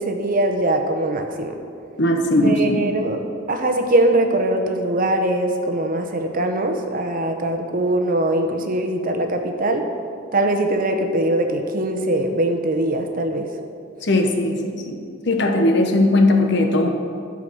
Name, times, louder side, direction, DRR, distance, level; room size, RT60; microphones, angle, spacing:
voice 1, 0.0-1.5 2.4-3.2 3.5-9.9 10.3-13.5, right 1 dB, 45° right, 5 dB, 0.9 m, -21 dB
voice 2, 2.0-2.9 14.0-15.0 15.3-16.9, left 1 dB, 65° left, 4 dB, 1.0 m, -18 dB
12.5 x 4.9 x 6.2 m, 2.4 s
head